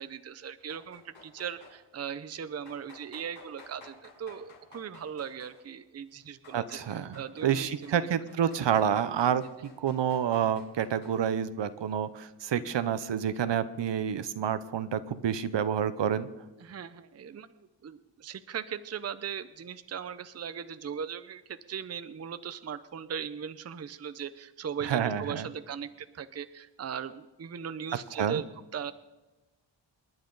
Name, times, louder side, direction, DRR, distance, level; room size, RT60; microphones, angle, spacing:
voice 1, 0.0-6.8 7.1-8.1 12.5-12.8 16.6-17.5 17.8-28.5 28.7-28.9, right 7 dB, 35° right, 12 dB, 0.6 m, -39 dB
sound 1, 0.6-1.8 2.7-5.7 6.2-8.0 8.3-11.3, left 3 dB, 75° left, 7.0 m, -55 dB
voice 2, 6.5-16.3 24.8-25.4 28.2-28.4, right 8 dB, 65° right, 13 dB, 0.9 m, -29 dB
28.0 x 10.5 x 4.0 m, 1.1 s
wide cardioid pair, 120°, 47 cm